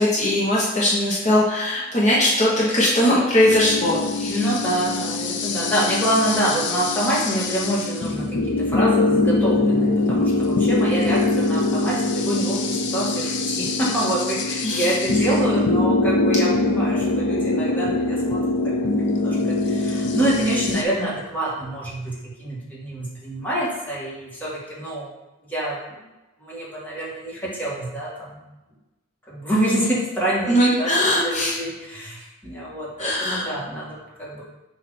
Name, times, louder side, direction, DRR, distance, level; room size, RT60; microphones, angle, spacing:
voice 1, 0.0-4.4 14.6-14.9 30.5-31.6 33.0-33.5, left 1 dB, 35° left, -6 dB, 1.1 m, -20 dB
sound 1, 3.5-20.8, left 2 dB, 60° left, 0.6 m, -23 dB
voice 2, 4.3-25.1 25.5-26.1 26.4-28.4 29.3-34.4, right 1 dB, 10° left, -7 dB, 1.5 m, -26 dB
6.8 x 2.8 x 5.3 m, 1.0 s
head